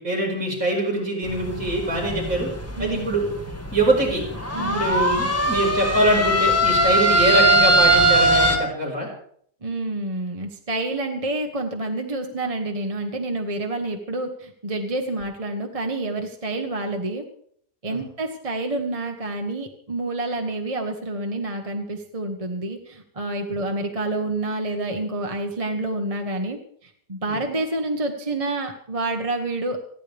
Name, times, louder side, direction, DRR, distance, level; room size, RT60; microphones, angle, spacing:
voice 1, 0.0-2.5 2.8-3.3 3.7-4.2 4.6-9.1 17.9-18.0 27.3-27.4, right 1 dB, 55° right, -3 dB, 5.7 m, -23 dB
sound 1, 1.2-8.6, right 1 dB, 10° left, 1.5 m, -21 dB
voice 2, 2.8-3.1 4.5-4.8 9.6-17.2 17.8-29.8, right 2 dB, 25° right, 3 dB, 1.2 m, -28 dB
28.0 x 10.5 x 3.5 m, 0.63 s
omnidirectional pair, 1.8 m